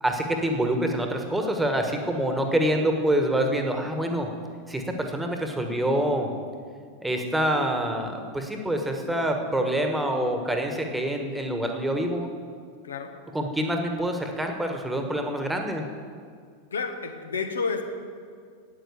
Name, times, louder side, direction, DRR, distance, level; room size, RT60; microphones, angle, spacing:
voice 1, 0.0-4.3 4.7-6.3 7.0-12.3 13.3-15.9, right 1 dB, 5° right, 3 dB, 1.5 m, -26 dB
voice 2, 12.8-13.2 16.7-17.8, left 5 dB, 70° left, 5 dB, 1.3 m, -30 dB
9.4 x 8.8 x 8.4 m, 2.1 s
figure-of-eight pair, 90°, 0 cm